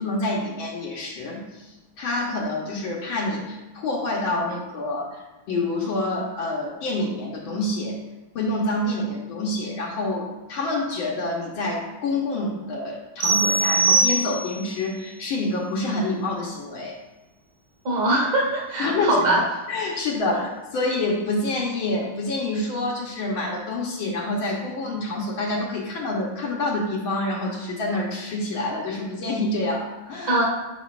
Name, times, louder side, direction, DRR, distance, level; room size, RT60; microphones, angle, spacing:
voice 1, 0.0-1.7 2.0-5.2 5.5-8.0 8.3-17.0 18.8-19.2 19.7-30.3, left 2 dB, 75° left, -2 dB, 1.8 m, -27 dB
sound 1, 13.2-14.7, right 3 dB, 80° right, 1.8 m, -21 dB
voice 2, 17.8-19.4 30.3-30.4, right 2 dB, 40° right, -3 dB, 2.1 m, -21 dB
9.2 x 5.1 x 2.5 m, 1.1 s
omnidirectional pair, 2.3 m